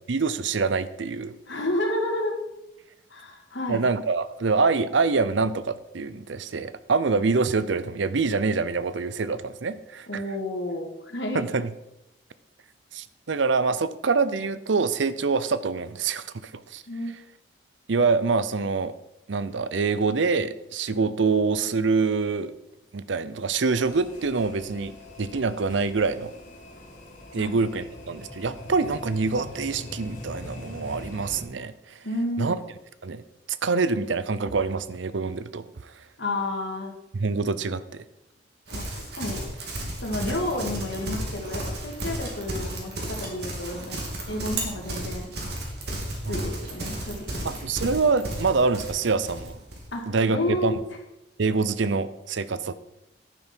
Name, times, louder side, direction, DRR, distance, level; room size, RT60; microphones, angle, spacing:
voice 1, 0.1-1.3 3.7-10.2 11.3-11.7 12.9-16.8 17.9-18.9 19.3-22.5 22.9-26.3 27.3-32.0 32.4-32.6 33.0-33.2 33.6-35.9 37.1-38.0 46.2-46.5 47.4-49.6 50.1-50.7 51.4-52.7, right 4 dB, 75° right, 15 dB, 0.6 m, -25 dB
voice 2, 1.5-2.4 3.1-3.9 10.1-11.4 16.9-17.1 27.4-27.6 32.0-32.6 36.2-36.9 38.7-39.5 40.0-44.0 44.3-45.3 46.3-47.5 49.9-50.8, left 1 dB, 70° left, 2 dB, 2.2 m, -30 dB
sound 1, 23.7-31.4, left 1 dB, 40° left, 2.2 m, -42 dB
Livestock farm animals working animals, 38.7-49.9, right 1 dB, 55° right, 2.6 m, -33 dB
11.0 x 9.9 x 4.5 m, 0.89 s
head